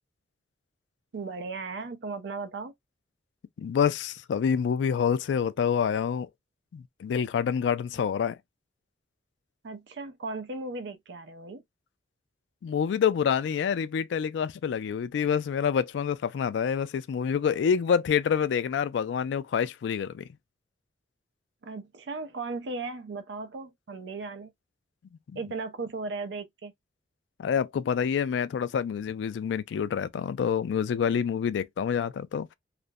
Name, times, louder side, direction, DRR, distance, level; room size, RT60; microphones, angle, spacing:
voice 1, 1.1-2.7 9.6-11.6 21.6-24.5 25.4-26.7, right 3 dB, 80° right, 0.5 m, -36 dB
voice 2, 3.6-6.3 6.7-8.4 12.6-20.2 27.4-32.5, left 7 dB, 85° left, 0.3 m, -27 dB
2.4 x 2.0 x 2.5 m
head